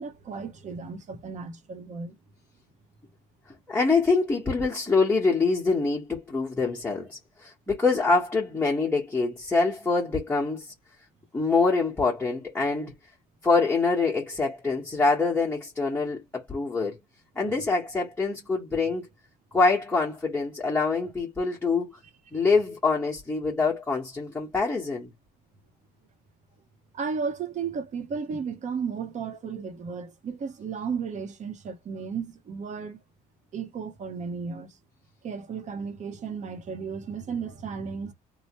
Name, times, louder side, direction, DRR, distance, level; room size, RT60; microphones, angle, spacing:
voice 1, 0.0-2.2 22.3-22.4 26.9-33.0 33.5-34.8 35.2-38.1, right 5 dB, 45° right, 0.8 m, -34 dB
voice 2, 3.7-10.7 11.3-12.9 13.4-17.0 17.3-19.1 19.5-22.0 22.3-25.1, left 4 dB, 10° left, 1.0 m, -25 dB
3.1 x 2.1 x 2.9 m
cardioid pair, 110°, 17 cm